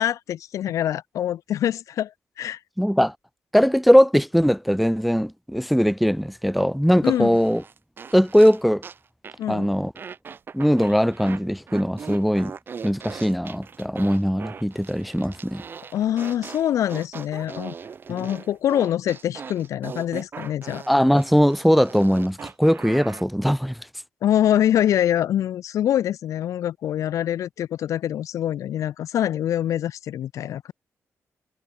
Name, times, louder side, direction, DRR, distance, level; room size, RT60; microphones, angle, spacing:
voice 1, 0.0-2.1 2.4-2.6 7.0-7.4 9.4-9.7 15.9-17.7 18.1-20.8 24.2-30.7, left 11 dB, 75° left, 0.8 m, -24 dB
voice 2, 2.8-3.1 3.5-7.6 8.1-8.8 9.5-9.9 10.5-12.5 12.8-15.6 18.1-18.3 20.9-23.8, equal, ahead, 0.4 m, -20 dB
sound 1, 7.0-9.0 9.2-9.5 9.9-11.4 11.7-23.2, right 6 dB, 40° right, 0.9 m, -40 dB
cardioid pair, 115°, 5 cm